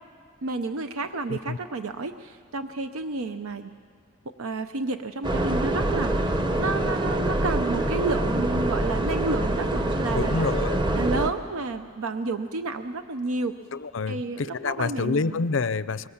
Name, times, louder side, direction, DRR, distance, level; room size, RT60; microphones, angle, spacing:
voice 1, 0.4-3.7 4.4-10.5 10.9-13.5 14.1-15.4, right 3 dB, 85° right, 9 dB, 0.7 m, -31 dB
sound 1, 5.2-11.3, right 1 dB, 20° right, 0.8 m, -25 dB
voice 2, 10.2-10.9 13.7-16.1, left 4 dB, 65° left, 17 dB, 0.5 m, -28 dB
24.5 x 21.5 x 7.2 m, 2.1 s
head